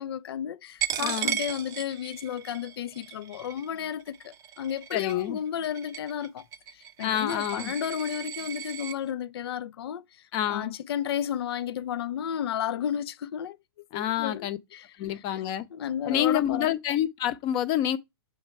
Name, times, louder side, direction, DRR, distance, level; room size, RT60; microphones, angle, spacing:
voice 1, 0.0-6.4 6.7-13.6 13.9-15.4 15.7-16.7, left 9 dB, 65° left, 0.5 m, -33 dB
Coin (dropping), 0.8-9.0, right 11 dB, 25° right, 0.5 m, -36 dB
voice 2, 1.0-1.4 4.9-5.4 7.0-7.7 10.3-10.7 13.9-14.6 15.0-15.7 16.0-18.0, left 11 dB, 35° left, 0.7 m, -27 dB
7.8 x 3.2 x 4.5 m
hypercardioid pair, 135°, 14 cm